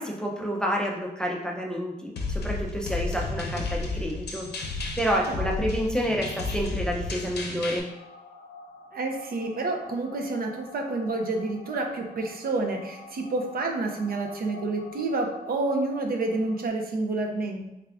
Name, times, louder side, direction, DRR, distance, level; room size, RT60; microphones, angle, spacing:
voice 1, 0.0-7.9, equal, 5° left, -1 dB, 0.4 m, -29 dB
sound 1, 2.2-7.8, left 3 dB, 90° left, 0.5 m, -32 dB
voice 2, 5.3-5.6 8.9-17.7, right 2 dB, 65° right, 2 dB, 0.5 m, -29 dB
sound 2, 7.8-16.7, left 3 dB, 45° left, 0.6 m, -47 dB
3.4 x 2.4 x 3.4 m, 0.91 s
wide cardioid pair, 135°, 17 cm